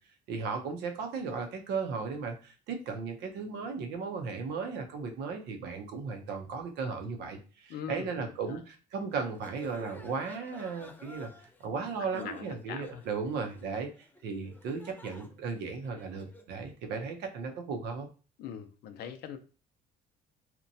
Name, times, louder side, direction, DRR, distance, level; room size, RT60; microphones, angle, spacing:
voice 1, 0.3-11.3 11.6-13.9 14.2-18.1, right 5 dB, 75° right, 5 dB, 0.6 m, -36 dB
voice 2, 7.7-8.6 12.1-13.0 18.4-19.4, left 8 dB, 70° left, 8 dB, 0.5 m, -42 dB
sound 1, 9.1-16.6, left 2 dB, 10° left, 0.4 m, -54 dB
2.7 x 2.1 x 2.6 m, 0.36 s
cardioid pair, 110°, 17 cm